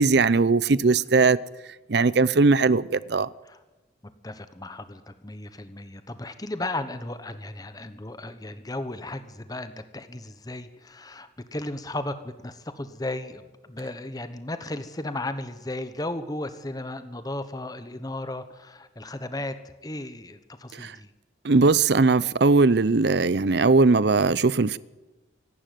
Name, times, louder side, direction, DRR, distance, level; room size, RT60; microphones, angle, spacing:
voice 1, 0.0-1.4 1.9-3.3 20.7-21.0 21.4-24.8, right 3 dB, 55° right, 0.6 m, -19 dB
voice 2, 4.2-19.6 19.8-21.1, left 2 dB, 20° left, 1.0 m, -35 dB
24.5 x 12.0 x 9.3 m
head